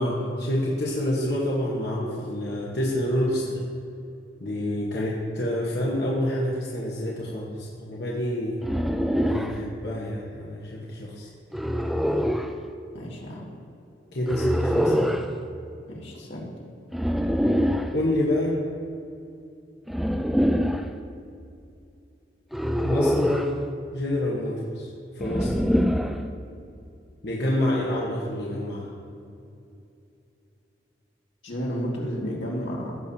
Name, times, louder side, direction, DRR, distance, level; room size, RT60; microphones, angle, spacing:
voice 1, 0.0-3.6 4.4-8.6 9.2-11.3 14.1-14.9 17.9-18.6 22.8-23.6 23.9-24.9 25.1-25.5 27.2-28.9, left 1 dB, 60° left, -5 dB, 1.2 m, -27 dB
sound 1, 8.6-9.6 11.5-12.5 14.3-15.3 16.9-17.9 19.9-20.9 22.5-23.6 25.2-26.2, equal, ahead, 0.3 m, -24 dB
voice 2, 12.9-13.4 14.8-15.1 15.9-16.5 31.4-33.0, equal, 90° left, -4 dB, 2.0 m, -32 dB
16.0 x 6.7 x 2.8 m, 2.6 s
head